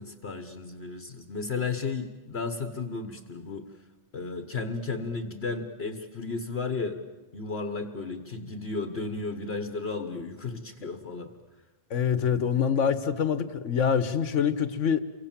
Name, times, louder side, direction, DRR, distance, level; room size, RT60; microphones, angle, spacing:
voice 1, 0.0-3.7 4.1-7.0 7.3-11.4, left 4 dB, 55° left, 8 dB, 1.5 m, -34 dB
voice 2, 11.9-15.0, left 7 dB, 75° left, 13 dB, 1.6 m, -25 dB
28.5 x 24.0 x 7.5 m, 1.1 s
omnidirectional pair, 1.3 m